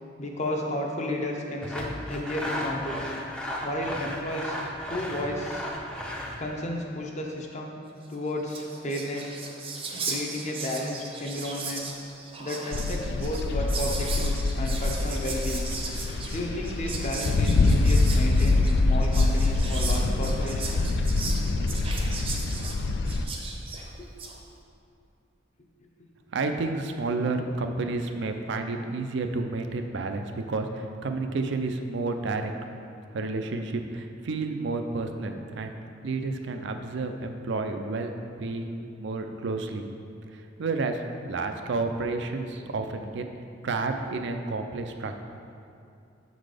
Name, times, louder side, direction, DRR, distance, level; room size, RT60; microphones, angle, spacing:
voice 1, 0.2-3.1 3.6-4.6 4.9-5.7 6.4-7.7 8.1-9.4 10.0-11.9 12.4-15.7 16.3-20.9 24.0-24.1, left 1 dB, 35° left, 0 dB, 0.7 m, -33 dB
Sawing, 1.6-6.4, equal, 5° left, 0.6 m, -34 dB
Whispering, 8.1-8.2 8.4-24.4, right 4 dB, 30° right, 0.7 m, -37 dB
sound 1, 12.7-23.2, left 2 dB, 60° left, 0.4 m, -25 dB
voice 2, 26.3-32.5 33.1-35.7 36.0-38.1 38.4-39.8 40.3-43.3 43.6-45.2, right 3 dB, 65° right, 5 dB, 0.5 m, -30 dB
7.2 x 4.0 x 4.9 m, 2.6 s
head